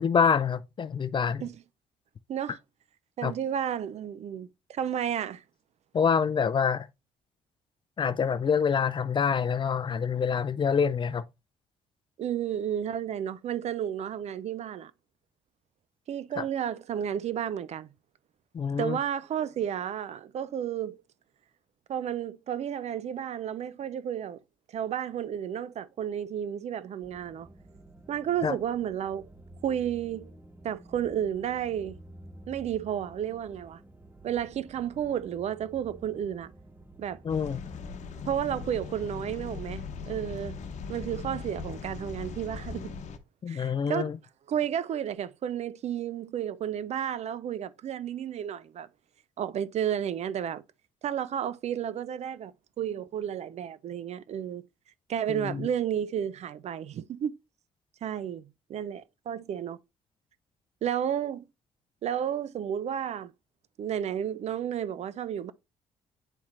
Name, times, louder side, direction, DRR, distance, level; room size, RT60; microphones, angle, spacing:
voice 1, 0.0-1.4 3.2-3.3 5.9-6.9 8.0-11.2 16.4-16.5 18.5-19.0 28.4-28.5 37.2-37.6 43.4-44.2 55.3-55.7, left 6 dB, 35° left, 0.4 m, -26 dB
voice 2, 3.2-5.4 12.2-14.9 16.1-17.9 18.8-21.0 21.9-24.4 24.7-27.5 28.1-29.3 29.6-30.3 30.6-32.0 32.5-33.8 34.2-36.5 37.0-37.2 38.3-40.6 40.9-42.9 43.5-44.1 44.5-48.9 49.4-50.6 51.0-52.5 52.8-54.6 55.1-57.3 58.0-59.8 60.8-61.4 62.0-63.3 63.8-65.5, right 9 dB, 55° right, 0.4 m, -32 dB
sound 1, 27.0-39.1, right 1 dB, 15° right, 0.9 m, -51 dB
sound 2, 37.3-43.2, left 5 dB, 60° left, 0.9 m, -39 dB
8.9 x 4.2 x 2.5 m
supercardioid pair, 65°, 14 cm